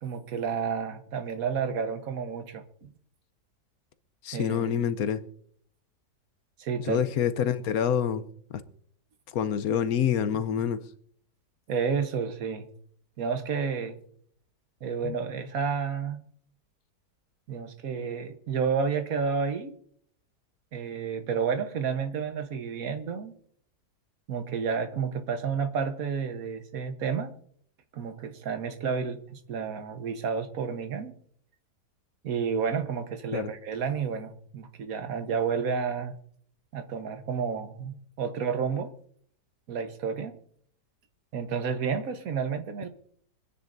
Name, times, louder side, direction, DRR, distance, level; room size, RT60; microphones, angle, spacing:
voice 1, 0.0-2.9 4.3-4.8 6.6-7.0 11.7-12.7 13.2-13.9 14.8-16.2 17.5-19.8 20.7-23.3 24.3-27.3 27.9-31.1 32.2-36.2 36.7-38.9 39.7-40.3 41.3-42.9, right 6 dB, 60° right, 1.5 m, -30 dB
voice 2, 4.2-5.3 6.8-8.3 8.5-8.6 9.3-10.9 15.0-15.1 33.3-33.5, left 8 dB, 70° left, 1.1 m, -27 dB
25.5 x 9.7 x 2.6 m
omnidirectional pair, 1.7 m